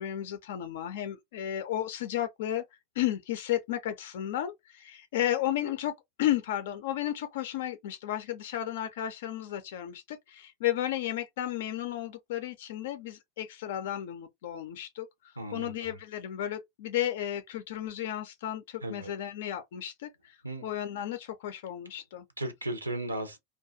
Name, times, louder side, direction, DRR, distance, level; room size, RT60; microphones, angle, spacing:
voice 1, 0.0-2.6 3.0-20.4 20.6-22.2, left 12 dB, 60° left, 0.3 m, -33 dB
voice 2, 15.4-15.9 18.8-19.1 20.4-20.7 22.4-23.4, right 1 dB, 85° right, 0.6 m, -35 dB
2.3 x 2.2 x 2.5 m
figure-of-eight pair, 85°, 0 cm